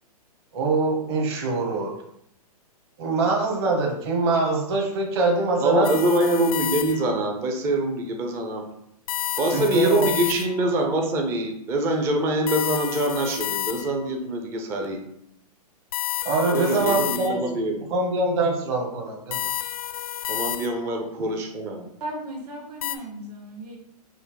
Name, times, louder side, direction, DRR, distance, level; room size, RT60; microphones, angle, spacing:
voice 1, 0.5-1.9 3.0-5.9 9.5-10.1 16.2-17.4 17.9-19.4, right 3 dB, 40° right, 1 dB, 1.1 m, -23 dB
voice 2, 5.6-8.6 9.4-15.0 16.5-18.0 20.3-21.8, right 1 dB, 15° right, 2 dB, 0.4 m, -24 dB
sound 1, 5.8-7.2 9.1-10.8 12.5-14.1 15.9-17.6 19.3-21.0 22.8-23.0, left 12 dB, 60° left, 0.4 m, -31 dB
voice 3, 22.0-23.8, right 1 dB, 80° right, -2 dB, 1.8 m, -36 dB
5.5 x 2.0 x 4.5 m, 0.73 s
hypercardioid pair, 155°, 20 cm